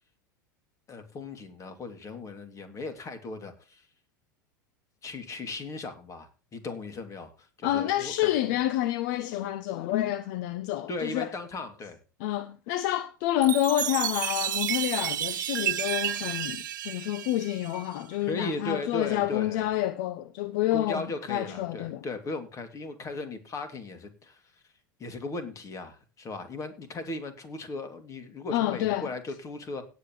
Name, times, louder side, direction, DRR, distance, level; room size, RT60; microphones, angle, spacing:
voice 1, 0.9-3.9 5.0-8.3 10.9-12.0 18.2-19.7 20.7-24.4 25.0-29.9, left 3 dB, 30° left, 2.6 m, -37 dB
voice 2, 7.6-11.3 12.2-21.0 21.3-22.0 28.5-29.1, left 13 dB, 60° left, 0.7 m, -28 dB
Chime, 13.4-18.0, right 12 dB, 70° right, 0.8 m, -31 dB
17.5 x 8.3 x 3.2 m
hypercardioid pair, 85°, 11 cm